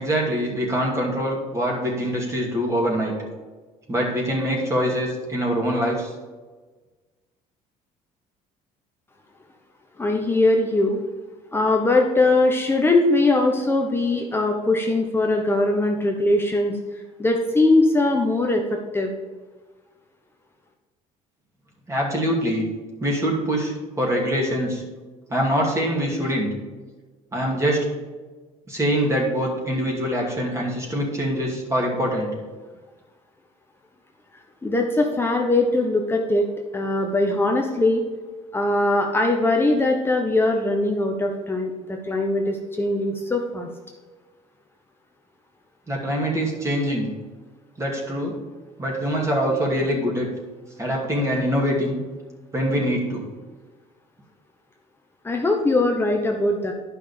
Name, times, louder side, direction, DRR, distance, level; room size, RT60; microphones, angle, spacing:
voice 1, 0.0-3.1 3.9-6.1 21.9-22.6 23.0-24.8 25.3-26.5 27.3-27.9 28.7-32.3 45.9-47.1 47.8-48.4 48.8-50.3 50.8-52.0 52.5-53.2, equal, 20° right, -2 dB, 2.5 m, -24 dB
voice 2, 10.0-11.0 11.5-16.8 17.2-19.2 34.6-36.5 36.7-38.0 38.5-43.7 55.2-56.7, left 2 dB, 15° left, 1 dB, 1.0 m, -21 dB
10.5 x 5.7 x 5.1 m, 1.3 s
cardioid pair, 110°, 15 cm